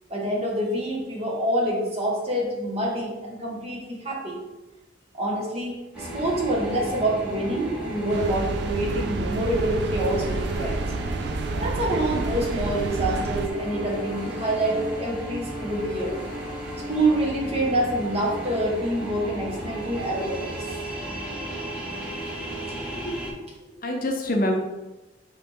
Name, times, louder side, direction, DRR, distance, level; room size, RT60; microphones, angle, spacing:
voice 1, 0.1-4.4 5.2-10.8 11.6-16.2 16.9-20.5, right 1 dB, 35° right, -3 dB, 1.7 m, -26 dB
sound 1, 5.9-23.3, right 1 dB, 5° right, 2.2 m, -34 dB
sound 2, 8.1-13.5, right 3 dB, 65° right, 0.4 m, -30 dB
voice 2, 22.7-23.5 23.8-24.6, left 1 dB, 50° left, 2 dB, 0.9 m, -27 dB
5.6 x 5.4 x 3.7 m, 1.1 s
head